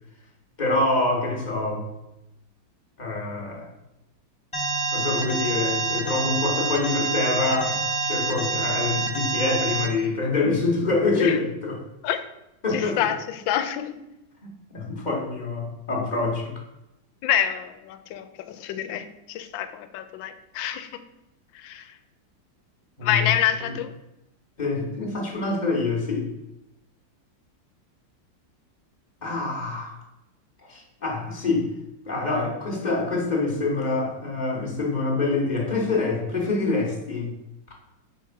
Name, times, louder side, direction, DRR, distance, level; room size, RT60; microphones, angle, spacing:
voice 1, 0.6-1.9 3.0-3.7 4.9-11.8 12.6-13.0 14.4-16.5 23.0-23.3 23.6-23.7 24.6-26.3 29.2-30.0 30.7-31.7 32.1-37.3, left 3 dB, 30° left, -1 dB, 1.1 m, -26 dB
Alarm, 4.5-9.8, right 3 dB, 5° left, 0.9 m, -26 dB
voice 2, 12.7-14.0 17.2-21.0 21.5-22.0 23.0-23.9, left 10 dB, 85° left, 10 dB, 1.3 m, -27 dB
4.6 x 4.3 x 5.7 m, 0.89 s
omnidirectional pair, 2.0 m